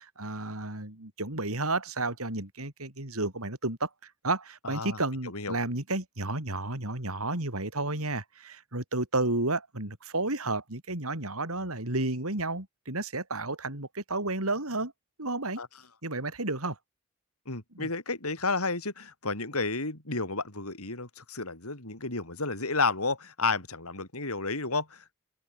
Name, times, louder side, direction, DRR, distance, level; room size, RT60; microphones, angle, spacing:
voice 1, 0.0-14.9 15.2-15.6 16.0-16.8 17.7-17.9, right 2 dB, 75° right, 4.7 m, -32 dB
voice 2, 4.6-5.0 5.2-5.6 15.6-15.7 17.5-25.1, left 3 dB, 80° left, 5.6 m, -31 dB
open air
head